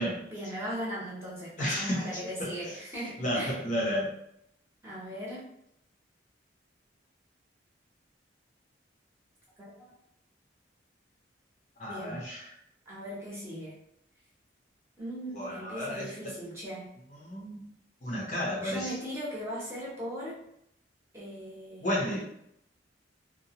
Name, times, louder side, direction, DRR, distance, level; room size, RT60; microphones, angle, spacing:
voice 1, 0.3-3.6 4.8-5.4 9.6-9.9 11.9-12.2 12.9-13.7 15.0-16.9 18.6-20.4 21.1-22.2, equal, 15° right, -6 dB, 0.8 m, -38 dB
voice 2, 1.6-2.5 3.2-4.1 11.8-12.5 15.3-16.3 17.1-17.7 18.0-18.9 21.8-22.2, equal, 40° left, -3 dB, 0.6 m, -32 dB
2.7 x 2.1 x 2.8 m, 0.75 s
head